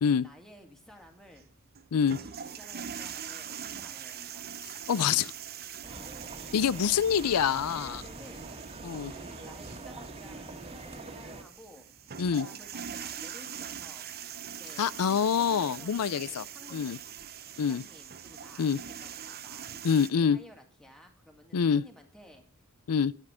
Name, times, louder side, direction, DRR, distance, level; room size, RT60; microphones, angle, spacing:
voice 1, 0.2-1.5 2.1-4.5 5.9-6.2 7.4-8.5 8.9-11.9 12.1-14.9 15.4-17.1 17.7-22.4, equal, ahead, 2.2 m, -53 dB
sound 1, 0.9-20.1, right 8 dB, 45° right, 0.8 m, -43 dB
voice 2, 4.9-5.3 6.5-8.0 8.8-9.1 12.2-12.5 14.8-16.4 16.7-17.0 17.6-17.8 18.6-18.8 19.8-20.4 21.5-21.8 22.9-23.1, left 7 dB, 85° left, 0.5 m, -26 dB
sound 2, 5.8-11.4, right 2 dB, 25° right, 1.7 m, -44 dB
10.0 x 9.7 x 5.0 m
head